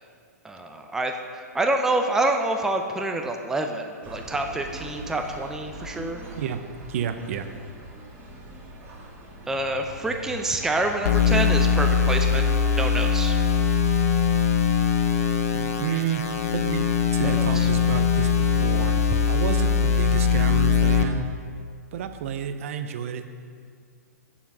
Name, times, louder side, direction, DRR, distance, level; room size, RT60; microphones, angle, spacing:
voice 1, 0.4-6.2 9.5-12.4 12.7-13.4 17.2-17.7, right 2 dB, 5° right, 4 dB, 0.5 m, -27 dB
sound 1, 4.0-12.7, right 1 dB, 25° right, 1.9 m, -41 dB
voice 2, 6.9-7.5 15.5-16.3 16.5-16.8 17.1-19.0 19.3-21.3 21.9-23.3, right 7 dB, 50° right, 9 dB, 0.6 m, -30 dB
sound 2, 11.0-21.0, left 6 dB, 60° left, 0.8 m, -21 dB
7.2 x 7.0 x 5.4 m, 2.1 s
figure-of-eight pair, 115°, 9 cm